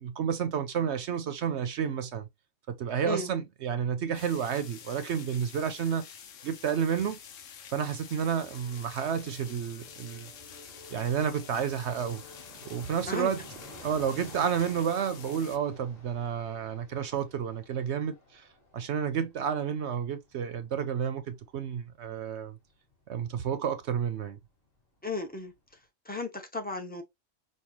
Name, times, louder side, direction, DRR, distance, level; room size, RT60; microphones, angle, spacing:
voice 1, 0.0-2.3 2.7-6.1 6.4-7.2 7.7-10.3 10.9-12.2 12.6-13.4 13.8-18.5 18.7-22.6 23.1-24.4, right 7 dB, 65° right, 0.8 m, -31 dB
sound 1, 4.1-15.6, left 8 dB, 70° left, 1.1 m, -49 dB
Fixed-wing aircraft airplane, 6.1-24.5 24.8-24.9 25.0-25.8, left 1 dB, 30° left, 1.6 m, -54 dB
Bowed string instrument, 8.3-16.7, left 2 dB, 50° left, 3.1 m, -56 dB
voice 2, 25.0-25.5 26.1-27.0, left 3 dB, 10° left, 0.5 m, -34 dB
5.4 x 2.3 x 2.9 m
omnidirectional pair, 1.4 m